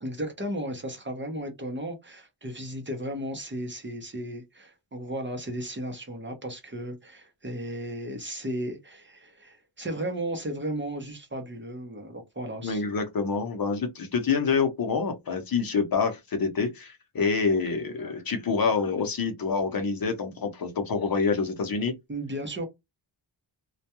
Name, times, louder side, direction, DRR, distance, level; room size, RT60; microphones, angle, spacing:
voice 1, 0.0-12.8 22.1-22.6, right 1 dB, 25° right, 0.7 m, -35 dB
voice 2, 12.6-21.9, left 5 dB, 50° left, 0.7 m, -27 dB
2.2 x 2.2 x 2.8 m
wide cardioid pair, 130°, 45 cm